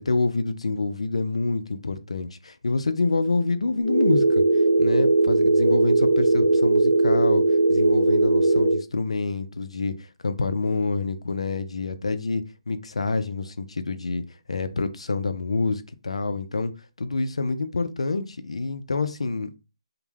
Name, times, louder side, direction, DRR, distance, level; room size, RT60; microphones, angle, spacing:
voice 1, 0.0-7.4 7.7-14.2 14.5-16.7 17.0-19.6, left 3 dB, 80° left, 0.3 m, -27 dB
sound 1, 3.8-8.8, right 2 dB, 70° right, 0.6 m, -19 dB
2.2 x 2.0 x 3.2 m
figure-of-eight pair, 155°, 3 cm